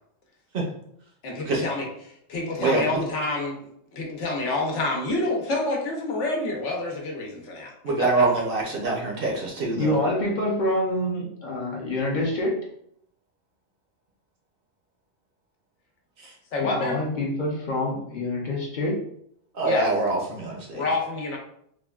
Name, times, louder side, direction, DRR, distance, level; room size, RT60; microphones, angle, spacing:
voice 1, 1.2-1.9 2.3-3.6 3.9-7.7 8.0-8.2 16.5-17.0 19.6-19.9 20.7-21.4, left 2 dB, 80° left, 0 dB, 1.0 m, -28 dB
voice 2, 2.6-3.0 7.8-9.9 16.2-16.3 19.5-20.9, right 3 dB, 60° right, -1 dB, 0.7 m, -25 dB
voice 3, 9.8-12.6 16.6-19.0, left 1 dB, 50° left, -2 dB, 0.6 m, -26 dB
3.4 x 2.2 x 2.3 m, 0.71 s
omnidirectional pair, 1.2 m